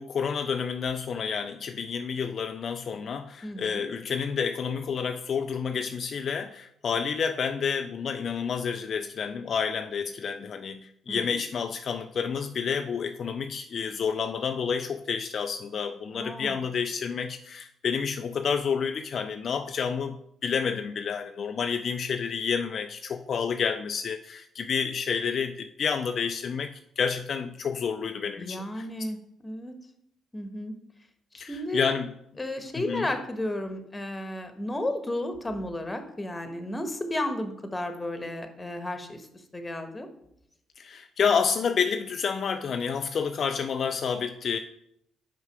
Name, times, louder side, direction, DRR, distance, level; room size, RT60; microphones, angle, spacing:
voice 1, 0.0-20.2 20.4-28.9 31.4-32.1 32.7-33.1 40.8-44.6, left 6 dB, 55° left, 7 dB, 0.3 m, -29 dB
voice 2, 3.4-3.8 11.1-11.3 16.1-16.6 28.4-29.2 29.4-29.7 30.3-30.7 31.3-31.9 32.4-39.2 39.5-40.1, left 1 dB, 20° left, 7 dB, 1.2 m, -33 dB
5.5 x 4.7 x 4.7 m, 0.75 s
hypercardioid pair, 50°, 0 cm